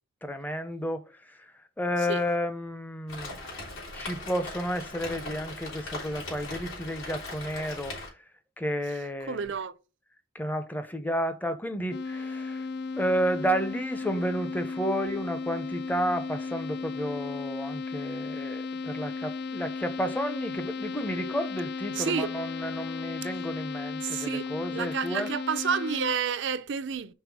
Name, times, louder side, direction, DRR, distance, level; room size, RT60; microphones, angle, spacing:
voice 1, 0.2-1.5 1.8-8.3 8.6-9.5 10.3-12.7 13.0-25.3, equal, 10° left, 0.6 m, -32 dB
Rain, 3.1-8.1, left 2 dB, 80° left, 3.5 m, -39 dB
voice 2, 9.3-9.7 22.0-22.3 24.0-27.1, right 6 dB, 60° right, 0.5 m, -30 dB
sound 1, 11.9-26.1, left 4 dB, 55° left, 0.3 m, -35 dB
5.4 x 4.0 x 4.7 m
head